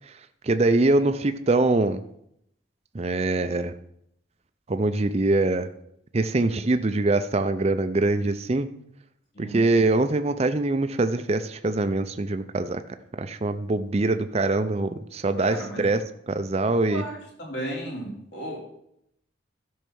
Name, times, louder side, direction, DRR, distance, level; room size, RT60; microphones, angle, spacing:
voice 1, 0.4-2.0 2.9-3.7 4.7-5.7 6.1-8.7 9.4-12.8 13.2-16.0 16.3-17.0, right 2 dB, 35° right, 9 dB, 0.5 m, -23 dB
voice 2, 15.4-16.0 16.8-18.6, right 1 dB, 60° left, -2 dB, 3.6 m, -35 dB
12.5 x 5.5 x 6.3 m, 0.75 s
head